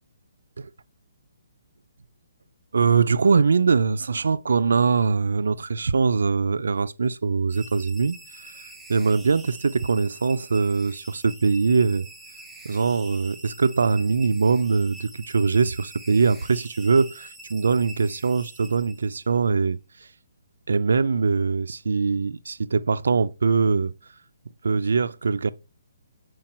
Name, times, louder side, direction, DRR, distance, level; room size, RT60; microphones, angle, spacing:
voice 1, 2.7-8.2 8.9-12.1 12.6-19.8 20.7-23.9 24.6-25.5, right 5 dB, 80° right, 0.5 m, -22 dB
sound 1, 7.5-19.4, right 2 dB, 5° right, 0.6 m, -46 dB
7.6 x 4.8 x 4.4 m
hypercardioid pair, 175°, 0 cm